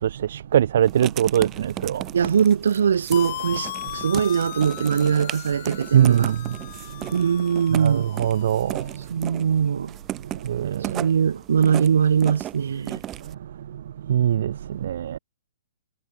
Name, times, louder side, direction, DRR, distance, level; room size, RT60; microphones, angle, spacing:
voice 1, 0.0-2.2 3.9-4.1 5.9-7.1 7.7-9.1 10.2-11.1 13.2-15.2, right 10 dB, 50° right, 0.5 m, -23 dB
Writing, 0.8-13.3, right 13 dB, 15° right, 1.7 m, -36 dB
voice 2, 2.1-6.3 7.1-8.1 9.1-9.9 10.9-13.0, right 7 dB, 75° right, 1.7 m, -21 dB
sound 1, 3.1-8.9, left 14 dB, 40° left, 4.0 m, -37 dB
hypercardioid pair, 170°, 0 cm